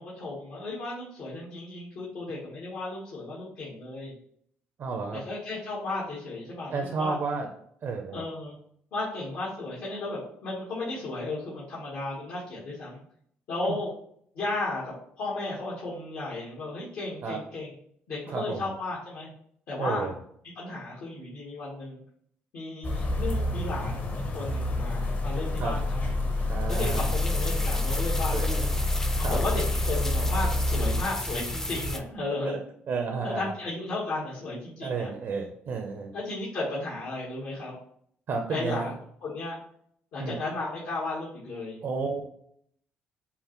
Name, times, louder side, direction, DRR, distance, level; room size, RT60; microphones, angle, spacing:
voice 1, 0.0-4.1 5.1-7.2 8.1-8.5 8.9-13.0 13.5-13.9 14.3-17.7 18.1-19.3 19.7-20.1 20.5-22.0 22.5-26.0 26.7-28.6 29.3-32.5 33.2-35.1 36.1-37.7 38.5-38.9 39.2-39.6 40.1-41.8, left 2 dB, 75° left, -6 dB, 1.3 m, -34 dB
voice 2, 4.8-5.2 6.7-7.5 7.8-8.2 13.7-13.8 17.2-17.4 18.3-18.6 19.8-20.1 25.6-25.7 26.5-27.0 28.2-28.7 29.2-29.4 32.4-32.6 32.9-33.6 34.8-36.1 38.3-38.9 40.2-40.4 41.8-42.2, right 4 dB, 60° right, 2 dB, 0.6 m, -31 dB
sound 1, 22.8-31.0, left 2 dB, 40° left, 0.8 m, -28 dB
sound 2, 26.7-32.0, left 1 dB, 10° left, 0.5 m, -34 dB
5.4 x 2.1 x 3.0 m, 0.66 s
cardioid pair, 85°, 5 cm